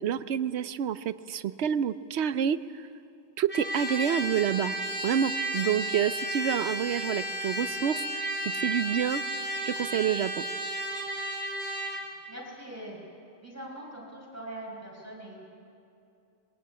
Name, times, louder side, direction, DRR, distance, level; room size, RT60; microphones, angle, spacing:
voice 1, 0.0-2.9 3.4-4.7 5.0-9.2 9.6-10.4, right 9 dB, 75° right, 14 dB, 1.0 m, -28 dB
Trumpet, 3.5-12.0, equal, 40° right, 4.2 m, -33 dB
voice 2, 12.3-13.0 13.4-15.4, right 1 dB, 15° right, -2 dB, 5.5 m, -42 dB
22.5 x 19.0 x 8.5 m, 2.6 s
omnidirectional pair, 1.2 m